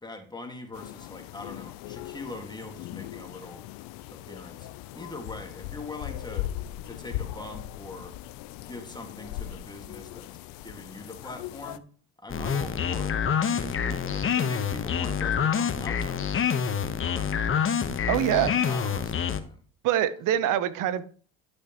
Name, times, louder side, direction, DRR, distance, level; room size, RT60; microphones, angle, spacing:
voice 1, 0.0-3.6 4.1-4.7 4.9-6.5 6.8-8.1 8.6-10.3 10.6-11.8 12.2-17.6 18.3-19.6, left 2 dB, 10° left, 3 dB, 1.9 m, -42 dB
sound 1, 0.7-11.8, left 14 dB, 75° left, 0.6 m, -39 dB
sound 2, 12.3-19.4, left 7 dB, 35° left, 1.0 m, -27 dB
voice 2, 18.1-18.5 19.8-21.0, right 11 dB, 65° right, 14 dB, 0.9 m, -24 dB
12.0 x 6.6 x 3.0 m, 0.43 s
supercardioid pair, 70°, 35 cm